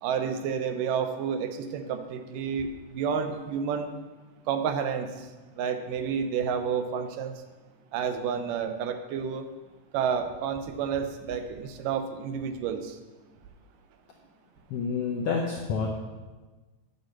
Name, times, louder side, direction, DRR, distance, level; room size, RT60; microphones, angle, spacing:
voice 1, 0.0-3.9 4.5-5.3 5.6-7.4 7.9-9.5 9.9-13.0, right 7 dB, 85° right, 8 dB, 2.4 m, -30 dB
voice 2, 14.7-15.9, left 5 dB, 80° left, 1 dB, 1.3 m, -28 dB
8.2 x 6.6 x 7.3 m, 1.3 s
omnidirectional pair, 3.7 m